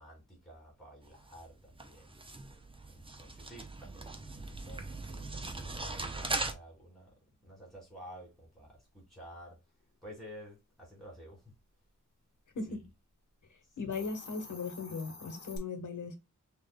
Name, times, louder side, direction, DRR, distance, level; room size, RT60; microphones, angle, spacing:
voice 1, 0.0-9.6 10.0-11.5 12.6-12.9 13.6-14.0, equal, ahead, 2.7 m, -52 dB
sound 1, 1.1-6.5, right 2 dB, 15° right, 0.7 m, -40 dB
voice 2, 13.5-16.2, left 4 dB, 70° left, 1.3 m, -38 dB
Hiss, 13.8-15.6, left 3 dB, 30° left, 1.3 m, -49 dB
5.7 x 3.3 x 2.2 m
wide cardioid pair, 140°, 31 cm